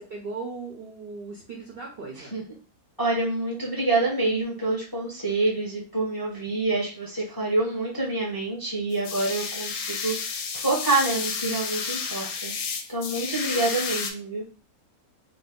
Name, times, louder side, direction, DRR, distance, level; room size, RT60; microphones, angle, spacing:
voice 1, 0.0-2.4, right 4 dB, 60° right, -1 dB, 0.6 m, -37 dB
voice 2, 3.0-12.5 12.9-14.4, right 2 dB, 20° left, -5 dB, 0.6 m, -27 dB
sound 1, 8.9-14.1, left 5 dB, 70° left, 0.9 m, -31 dB
2.7 x 2.2 x 3.5 m, 0.37 s
omnidirectional pair, 1.6 m